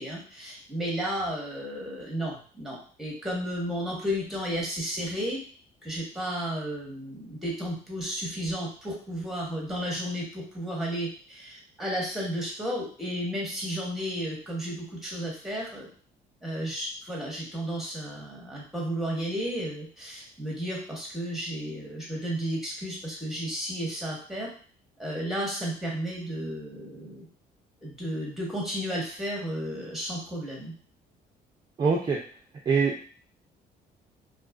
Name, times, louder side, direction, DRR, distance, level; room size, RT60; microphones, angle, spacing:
voice 1, 0.0-5.4 5.8-15.9 16.4-24.5 25.0-27.3 27.8-30.7, equal, ahead, -2 dB, 0.9 m, -33 dB
voice 2, 31.8-32.2 32.7-33.1, right 5 dB, 25° right, -2 dB, 0.4 m, -24 dB
2.4 x 2.3 x 2.4 m, 0.43 s
cardioid pair, 110°, 17 cm